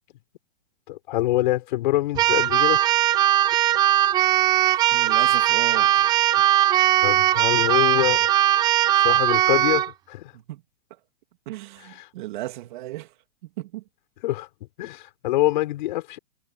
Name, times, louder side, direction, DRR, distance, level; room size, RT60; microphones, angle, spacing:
voice 1, 0.9-2.8 7.0-8.3 9.0-10.3 11.9-12.1 14.2-14.5 14.8-16.2, left 16 dB, 50° left, 5.9 m, -25 dB
Keyboard (musical), 2.2-9.9, right 12 dB, 15° right, 0.6 m, -19 dB
voice 2, 4.6-6.5 10.3-10.6 11.4-13.1 13.6-13.8, right 16 dB, 50° right, 3.2 m, -36 dB
hypercardioid pair, 160°, 31 cm